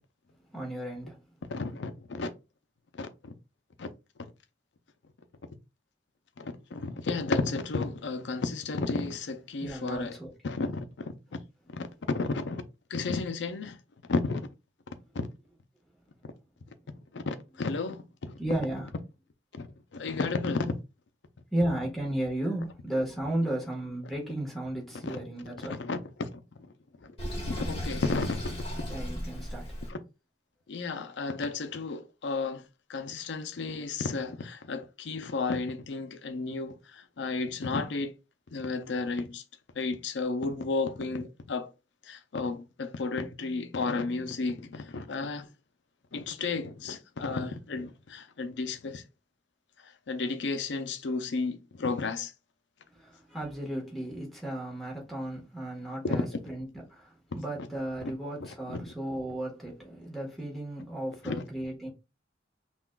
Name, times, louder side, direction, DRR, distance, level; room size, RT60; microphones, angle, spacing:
voice 1, 0.5-1.2 9.6-10.5 18.4-18.9 21.5-25.8 28.9-29.7 52.9-61.9, right 1 dB, ahead, 1.4 m, -34 dB
voice 2, 1.5-2.3 2.9-3.3 3.8-3.9 6.4-10.2 10.4-11.1 11.7-12.6 12.9-13.8 14.1-14.5 15.1-15.3 17.1-18.4 19.5-19.7 19.9-20.7 25.0-25.2 25.7-26.3 27.4-28.9 29.9-30.0 30.7-32.6 32.9-38.1 38.5-39.4 39.8-41.7 42.1-45.5 46.1-49.0 50.1-52.3 56.0-56.2 58.7-58.8 61.2-61.4, left 3 dB, 75° left, 0.5 m, -32 dB
Sink (filling or washing), 27.2-29.9, equal, 30° left, 1.5 m, -35 dB
5.7 x 2.4 x 2.3 m
head